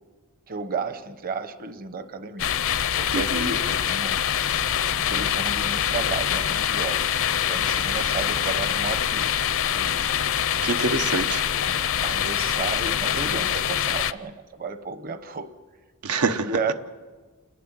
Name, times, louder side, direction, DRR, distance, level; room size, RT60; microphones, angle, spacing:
voice 1, 0.5-2.6 3.0-4.2 5.1-7.1 7.5-9.3 9.7-10.1 11.7-15.5 16.4-16.7, right 4 dB, 40° right, 10 dB, 0.9 m, -33 dB
sound 1, 2.4-14.1, left 9 dB, 65° left, 0.6 m, -24 dB
voice 2, 3.1-3.5 10.6-11.4 16.0-16.7, right 4 dB, 90° right, 7 dB, 1.0 m, -26 dB
28.5 x 11.0 x 9.5 m, 1.4 s
head